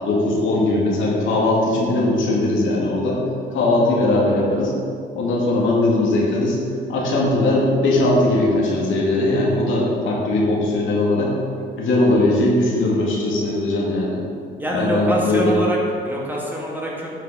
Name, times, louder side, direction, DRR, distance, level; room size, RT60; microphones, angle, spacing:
voice 1, 0.0-3.2 3.5-4.7 5.2-6.6 6.9-11.3 11.8-14.2 14.7-15.5, left 2 dB, 80° left, -4 dB, 2.3 m, -19 dB
voice 2, 14.6-17.1, right 1 dB, 10° right, -4 dB, 2.2 m, -25 dB
9.4 x 6.1 x 5.2 m, 2.3 s
cardioid pair, 90°, 20 cm